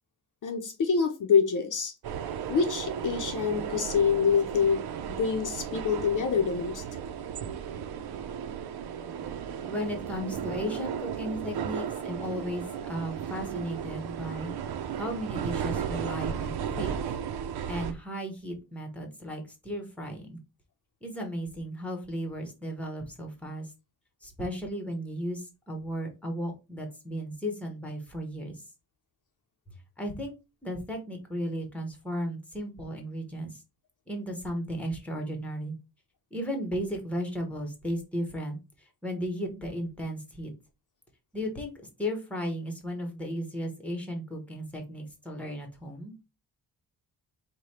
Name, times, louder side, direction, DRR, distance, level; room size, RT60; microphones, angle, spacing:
voice 1, 0.4-1.9 2.5-4.8 5.2-6.8, left 6 dB, 55° left, 0.7 m, -26 dB
sound 1, 2.0-17.9, right 8 dB, 90° right, 0.6 m, -35 dB
voice 2, 9.7-14.5 14.9-16.9 17.7-20.4 21.0-23.7 24.2-28.6 30.0-30.3 30.6-33.6 34.1-35.8 36.3-40.5 41.3-41.7 42.0-46.1, equal, 5° left, 0.9 m, -35 dB
4.9 x 2.2 x 4.2 m
wide cardioid pair, 175°, 37 cm